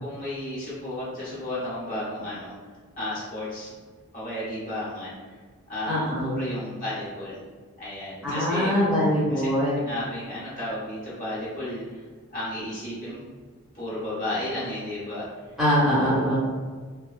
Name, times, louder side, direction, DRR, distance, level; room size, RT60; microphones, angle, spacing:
voice 1, 0.0-2.5 3.0-3.7 4.1-5.4 5.7-5.9 6.2-7.4 7.8-8.7 9.3-9.5 9.8-12.0 12.3-13.2 13.7-15.3 16.1-16.3, left 1 dB, 40° left, -8 dB, 0.8 m, -33 dB
voice 2, 5.9-6.3 8.2-9.8 15.6-16.3, equal, ahead, -11 dB, 0.7 m, -23 dB
2.4 x 2.1 x 2.3 m, 1.5 s
head